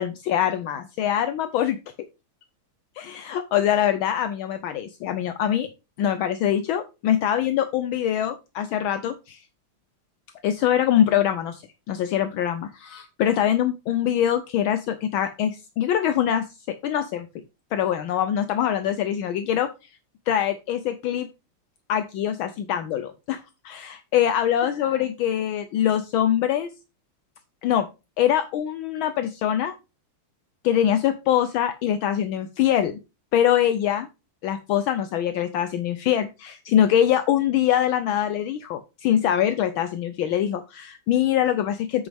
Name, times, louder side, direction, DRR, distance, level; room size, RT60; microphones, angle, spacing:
voice 1, 0.0-1.8 3.0-5.7 6.0-9.4 10.4-17.3 17.7-19.7 20.3-21.3 21.9-26.7 27.6-27.9 28.2-29.7 30.6-33.0 33.3-34.1 34.4-42.1, left 10 dB, 75° left, 10 dB, 1.4 m, -23 dB
8.4 x 6.1 x 3.5 m, 0.27 s
omnidirectional pair, 2.4 m